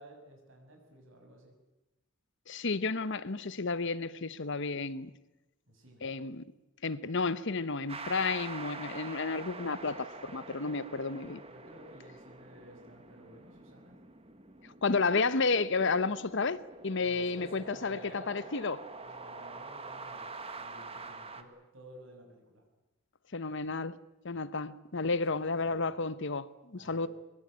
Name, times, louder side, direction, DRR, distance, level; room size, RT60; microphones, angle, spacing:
voice 1, 0.0-1.5 5.7-6.1 11.5-13.9 17.0-18.4 19.0-22.6 25.5-25.9 26.8-27.1, right 1 dB, 70° right, 6.6 m, -54 dB
voice 2, 2.5-5.1 6.0-6.4 6.8-11.4 14.8-16.6 16.8-18.8 23.3-23.9 24.2-27.1, left 4 dB, 60° left, 1.0 m, -32 dB
sound 1, 7.9-21.4, right 3 dB, 30° right, 1.8 m, -46 dB
23.0 x 22.0 x 8.9 m
head